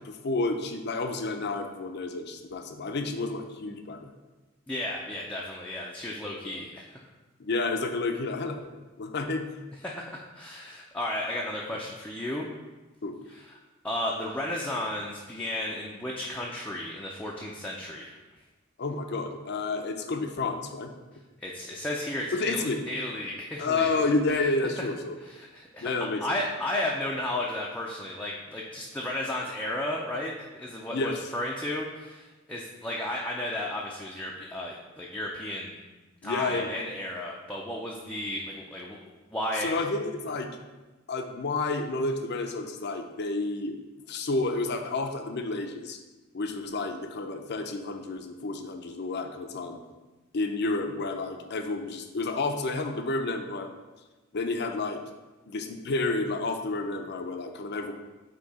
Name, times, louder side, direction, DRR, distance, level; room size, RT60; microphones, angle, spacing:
voice 1, 0.0-4.1 7.4-8.6 9.0-9.5 13.0-13.2 18.8-20.9 22.3-22.8 23.6-25.1 25.8-26.4 30.9-31.2 36.2-36.7 39.6-40.5 41.1-43.8 44.1-46.0 46.3-49.8 50.3-53.7 54.3-55.0 55.4-57.9, left 3 dB, 55° left, 6 dB, 0.6 m, -30 dB
voice 2, 4.7-7.0 9.8-12.5 13.3-13.5 13.8-18.1 21.4-23.9 25.3-25.9 26.2-35.8 36.2-39.0 39.3-39.7, left 1 dB, 5° left, -3 dB, 0.5 m, -33 dB
8.2 x 2.9 x 4.1 m, 1.2 s
head